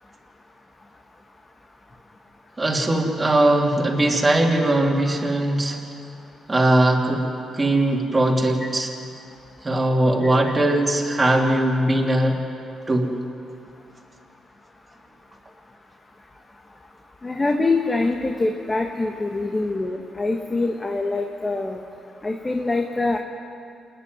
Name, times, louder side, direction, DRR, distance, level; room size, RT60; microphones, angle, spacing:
voice 1, 2.6-5.8 6.5-7.3 7.5-8.9 9.6-12.4 12.9-13.1, right 1 dB, 20° right, -1 dB, 3.1 m, -20 dB
voice 2, 17.2-21.8 22.2-23.2, left 3 dB, 20° left, 3 dB, 1.5 m, -24 dB
27.0 x 10.5 x 9.6 m, 2.5 s
cardioid pair, 90°, 0 cm